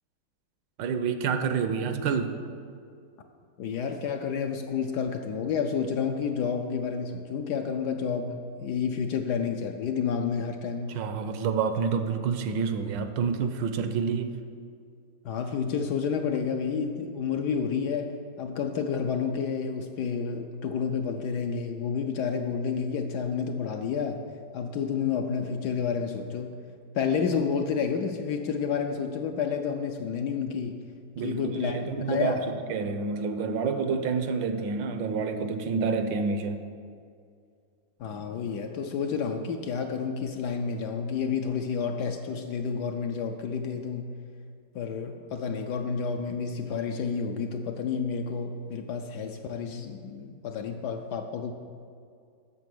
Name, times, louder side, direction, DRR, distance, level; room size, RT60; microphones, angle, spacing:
voice 1, 0.8-2.3 10.9-14.3 31.2-32.4 32.7-36.6, right 5 dB, 75° right, 9 dB, 1.3 m, -28 dB
voice 2, 3.6-11.0 15.2-24.2 24.5-26.6 26.9-30.8 31.2-32.4 38.0-44.1 44.7-51.5, left 6 dB, 70° left, 5 dB, 1.0 m, -30 dB
8.3 x 6.5 x 7.7 m, 2.3 s
omnidirectional pair, 2.1 m